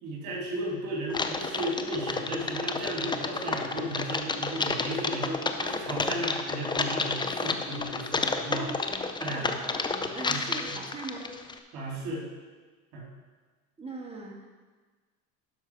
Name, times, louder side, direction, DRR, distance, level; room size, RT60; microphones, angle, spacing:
voice 1, 0.0-8.7 9.2-9.6 10.0-10.4 10.7-10.8 11.7-12.2 12.9-13.1, right 1 dB, 60° right, -3 dB, 3.4 m, -35 dB
Typing, 1.1-11.6, left 4 dB, 10° left, 0.6 m, -31 dB
voice 2, 9.3-11.3 13.8-14.4, right 3 dB, 15° right, -1 dB, 1.9 m, -40 dB
12.0 x 5.7 x 4.7 m, 1.4 s
hypercardioid pair, 90°, 42 cm